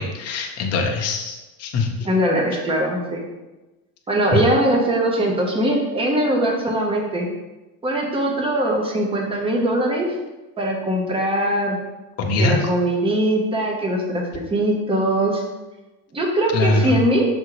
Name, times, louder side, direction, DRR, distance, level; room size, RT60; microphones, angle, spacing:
voice 1, 0.0-2.1 12.2-12.7 16.5-17.0, left 2 dB, 35° left, 1 dB, 0.9 m, -22 dB
voice 2, 2.0-3.3 4.1-7.3 7.8-10.1 10.6-11.8 12.4-14.2 14.5-15.4 16.1-17.3, right 1 dB, 10° right, 0 dB, 0.9 m, -21 dB
6.3 x 3.7 x 4.8 m, 1.1 s
cardioid pair, 150°, 44 cm